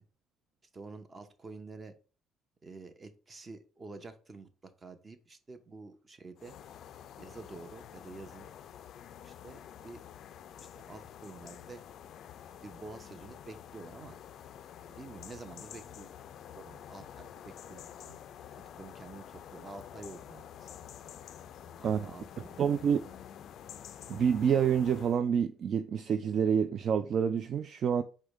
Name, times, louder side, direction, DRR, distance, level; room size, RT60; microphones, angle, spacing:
voice 1, 0.7-1.9 2.6-6.6 7.2-8.5 9.2-10.0 10.6-11.8 12.6-14.2 14.9-16.1 16.5-18.2 18.7-20.7 21.8-22.9, right 3 dB, 30° right, 0.8 m, -49 dB
sound 1, 6.4-25.2, left 9 dB, 60° left, 0.3 m, -49 dB
voice 2, 22.4-23.0 24.1-28.0, right 7 dB, 55° right, 0.3 m, -28 dB
4.8 x 2.2 x 4.7 m
supercardioid pair, 85°, 0 cm